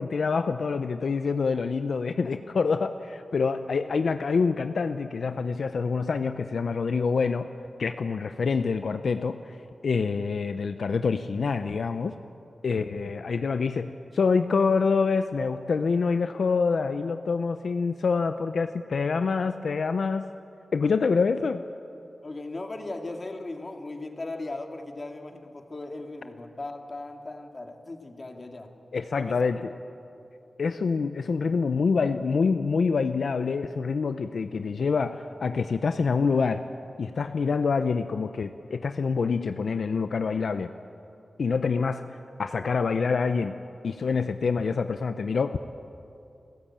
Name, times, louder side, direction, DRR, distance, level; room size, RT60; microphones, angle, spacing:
voice 1, 0.0-7.5 7.8-9.6 9.8-12.1 12.6-20.3 20.7-21.6 28.9-29.6 30.6-36.7 37.0-40.7 41.4-43.6 43.8-45.7, left 5 dB, 80° left, 9 dB, 0.7 m, -26 dB
voice 2, 22.2-28.7 29.1-29.6, left 2 dB, 40° left, 4 dB, 2.2 m, -38 dB
29.5 x 14.5 x 8.8 m, 2.7 s
wide cardioid pair, 115°, 0 cm